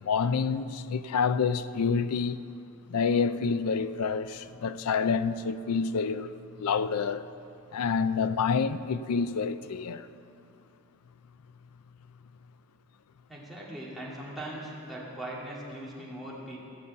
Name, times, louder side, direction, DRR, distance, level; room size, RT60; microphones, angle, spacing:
voice 1, 0.0-2.4 2.9-7.3 7.7-10.1, left 5 dB, 85° left, 0.4 m, -28 dB
voice 2, 13.3-16.6, right 1 dB, ahead, 2.2 m, -40 dB
14.5 x 5.4 x 8.4 m
head